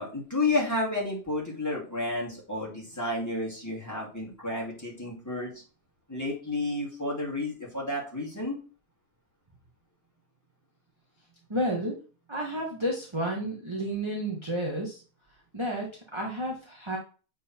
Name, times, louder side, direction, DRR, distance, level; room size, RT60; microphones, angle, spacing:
voice 1, 0.0-5.5 6.1-8.6, left 2 dB, 10° left, -5 dB, 2.6 m, -31 dB
voice 2, 11.5-11.9 12.3-15.0 15.5-17.0, right 1 dB, 20° right, -2 dB, 1.3 m, -31 dB
7.2 x 3.9 x 4.4 m, 0.36 s
omnidirectional pair, 1.4 m